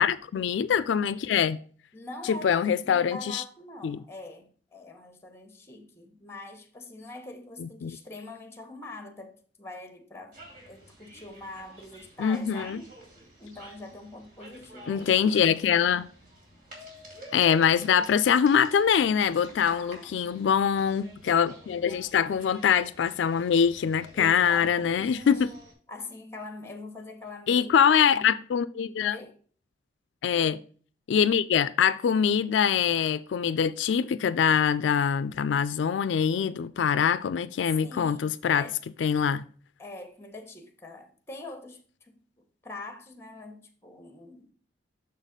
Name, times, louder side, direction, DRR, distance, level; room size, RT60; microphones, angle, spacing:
voice 1, 0.0-1.6 2.3-3.4 3.8-4.0 7.6-8.0 12.2-12.8 14.9-16.1 17.3-25.5 27.5-29.2 30.2-30.6 31.1-38.6 39.0-39.4, left 7 dB, 80° left, 0.3 m, -24 dB
voice 2, 1.9-2.5 2.8-10.4 10.7-12.9 13.4-15.1 19.6-20.4 24.1-25.2 25.9-27.7 28.1-28.4 29.0-29.3 37.8-38.7 39.8-44.5, left 2 dB, 15° left, 1.1 m, -44 dB
sound 1, 10.3-25.7, right 1 dB, 50° right, 2.6 m, -49 dB
6.5 x 4.1 x 5.1 m
head